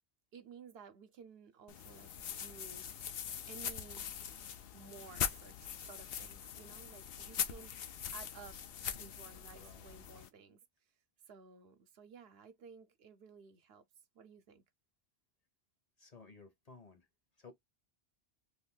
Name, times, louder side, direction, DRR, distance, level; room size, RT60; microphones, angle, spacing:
voice 1, 0.3-2.9 3.5-4.1 4.7-8.6 9.0-10.6 11.3-13.8 14.1-14.6, right 6 dB, 70° right, 0.8 m, -55 dB
sound 1, 1.7-10.3, left 8 dB, 70° left, 0.8 m, -42 dB
voice 2, 16.0-17.1 17.4-17.5, left 4 dB, 40° left, 0.9 m, -56 dB
2.7 x 2.5 x 3.6 m
omnidirectional pair, 1.1 m